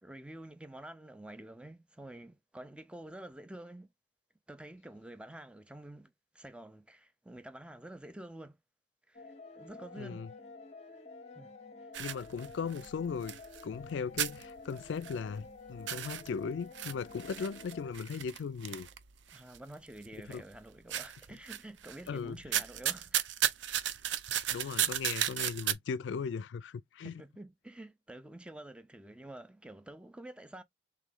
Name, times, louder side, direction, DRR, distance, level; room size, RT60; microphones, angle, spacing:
voice 1, 0.0-3.9 4.5-8.6 9.1-10.3 11.3-11.5 19.3-23.2 27.0-30.6, right 1 dB, 5° right, 0.4 m, -49 dB
sound 1, 9.1-17.9, left 3 dB, 35° left, 0.7 m, -50 dB
voice 2, 10.0-10.3 12.0-18.9 20.3-20.4 22.1-22.4 24.5-27.1, left 5 dB, 75° left, 0.3 m, -38 dB
sound 2, 11.9-13.9 14.2-15.5 15.7-19.6 20.0-20.6 20.9-22.1 22.4-25.7, right 10 dB, 75° right, 0.5 m, -34 dB
3.4 x 3.0 x 3.7 m
head